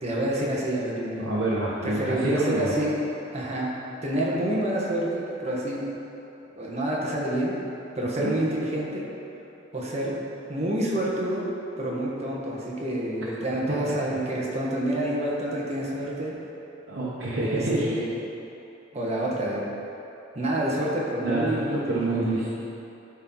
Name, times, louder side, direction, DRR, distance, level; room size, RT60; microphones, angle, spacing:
voice 1, 0.0-1.3 1.8-3.0 3.3-3.7 4.0-5.9 6.5-7.6 7.9-9.1 9.7-10.2 10.5-11.5 11.8-16.3 17.4-18.1 18.9-19.6 20.3-22.3, right 1 dB, 35° right, -5 dB, 1.4 m, -28 dB
voice 2, 1.2-2.7 8.2-8.3 16.9-17.8 21.2-22.5, right 2 dB, 75° right, -8 dB, 1.2 m, -27 dB
12.5 x 4.5 x 3.9 m, 2.9 s
head